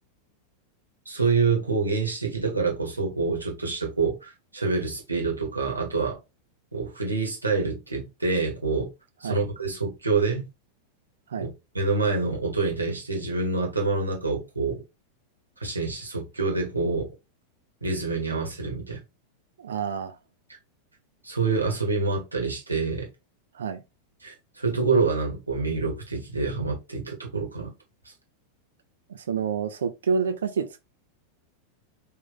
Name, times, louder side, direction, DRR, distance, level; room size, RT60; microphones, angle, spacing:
voice 1, 1.0-6.2 6.7-8.9 9.2-10.5 11.4-14.8 15.6-17.1 17.8-19.0 21.2-23.1 24.2-27.7, right 4 dB, 85° right, 1.2 m, -27 dB
voice 2, 19.6-20.2 23.5-23.8 29.1-30.8, right 6 dB, 65° right, 0.4 m, -28 dB
3.5 x 2.6 x 3.6 m
figure-of-eight pair, 90°, 0 cm